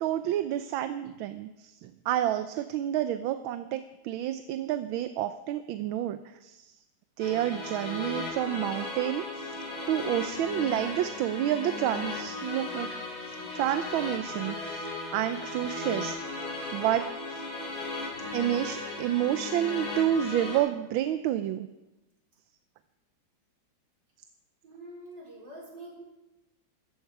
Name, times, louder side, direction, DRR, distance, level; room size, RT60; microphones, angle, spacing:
voice 1, 0.0-6.7 7.2-9.6 9.9-12.9 13.3-14.9 15.1-16.2 16.7-17.4 18.3-21.7, right 12 dB, 85° right, 10 dB, 1.4 m, -29 dB
sound 1, 7.2-20.6, left 3 dB, 75° left, 5.8 m, -36 dB
voice 2, 24.6-26.0, right 1 dB, 60° right, -3 dB, 4.9 m, -45 dB
16.0 x 14.0 x 4.7 m, 1.0 s
omnidirectional pair, 2.2 m